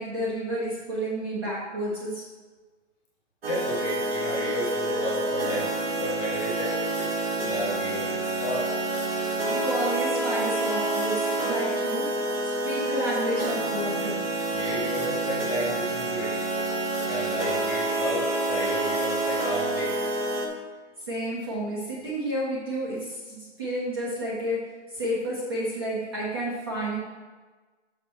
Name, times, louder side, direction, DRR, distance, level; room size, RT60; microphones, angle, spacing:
voice 1, 0.0-2.3 9.5-14.2 21.1-27.0, right 1 dB, 20° right, -6 dB, 0.8 m, -31 dB
voice 2, 3.4-7.1 7.4-8.7 14.5-16.3 17.0-20.0, equal, 15° left, -6 dB, 1.1 m, -33 dB
sound 1, 3.4-20.5, right 2 dB, 50° right, 1.3 m, -28 dB
6.3 x 5.6 x 4.6 m, 1.3 s
hypercardioid pair, 165°, 37 cm